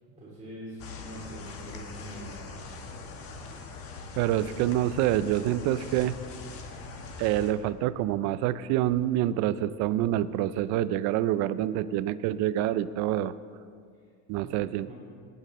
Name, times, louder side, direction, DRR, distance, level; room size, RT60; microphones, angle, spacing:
voice 1, 0.2-2.6 14.4-14.6 14.9-15.0, right 1 dB, 25° right, -7 dB, 2.6 m, -44 dB
sound 1, 0.8-7.5, left 4 dB, 50° left, 1.3 m, -42 dB
voice 2, 4.2-6.2 7.2-13.3 14.3-14.9, right 13 dB, 70° right, 16 dB, 0.5 m, -27 dB
18.0 x 8.8 x 3.7 m, 2.2 s
cardioid pair, 140°, 30 cm